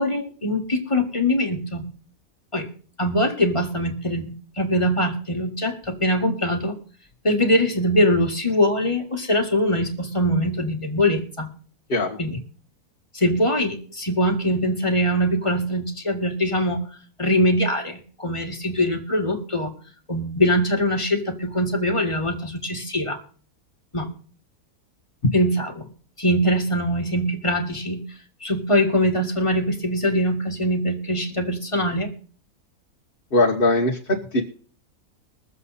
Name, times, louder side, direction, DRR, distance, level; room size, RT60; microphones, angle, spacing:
voice 1, 0.0-1.9 2.5-2.7 3.0-6.8 7.2-11.5 12.2-12.4 13.1-16.8 17.2-19.7 20.1-23.2 23.9-24.1 25.3-25.9 26.2-28.0 28.4-32.1, equal, 20° left, 4 dB, 1.8 m, -22 dB
voice 2, 33.3-34.4, left 2 dB, 40° left, 0 dB, 1.5 m, -20 dB
22.0 x 7.5 x 4.1 m, 0.43 s
omnidirectional pair, 1.6 m